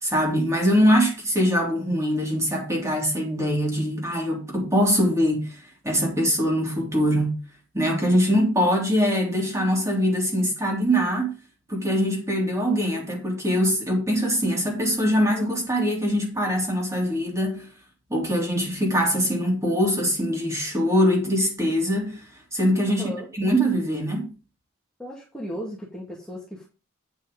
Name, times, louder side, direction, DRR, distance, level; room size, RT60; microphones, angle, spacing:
voice 1, 0.0-5.6 5.8-7.3 7.7-11.3 11.7-17.7 18.1-22.2 22.5-24.3, equal, 15° right, 3.4 m, -23 dB
voice 2, 22.9-23.3 25.0-26.7, equal, 5° left, 2.2 m, -35 dB
9.2 x 6.5 x 5.2 m
head